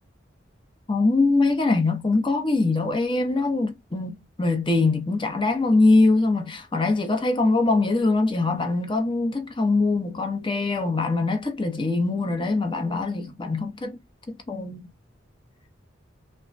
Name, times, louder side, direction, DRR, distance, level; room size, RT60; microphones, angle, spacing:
voice 1, 0.9-14.0 14.5-14.8, left 3 dB, 25° left, 0.7 m, -23 dB
3.3 x 2.1 x 2.5 m
head